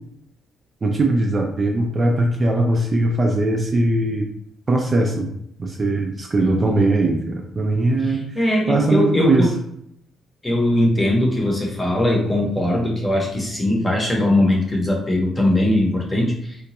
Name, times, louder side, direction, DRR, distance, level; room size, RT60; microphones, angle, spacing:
voice 1, 0.8-4.3 4.7-5.3 5.6-9.5, right 2 dB, 25° right, 1 dB, 0.4 m, -20 dB
voice 2, 6.4-6.7 8.1-9.5 10.4-16.6, left 1 dB, 15° left, -1 dB, 0.8 m, -20 dB
3.7 x 2.2 x 2.9 m, 0.73 s
cardioid pair, 160°, 0 cm